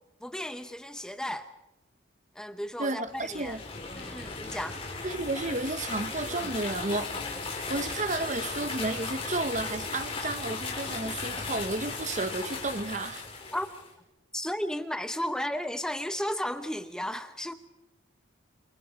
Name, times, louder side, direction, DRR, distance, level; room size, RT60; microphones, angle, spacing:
voice 1, 0.2-1.5 2.3-3.6 3.9-4.8 13.5-13.7 14.3-17.5, left 1 dB, 5° left, 0.7 m, -34 dB
voice 2, 2.8-3.6 5.0-7.1 7.7-13.3, right 2 dB, 35° right, 1.0 m, -32 dB
sound 1, 3.1-13.9, left 4 dB, 30° left, 5.0 m, -36 dB
28.5 x 27.0 x 5.2 m
head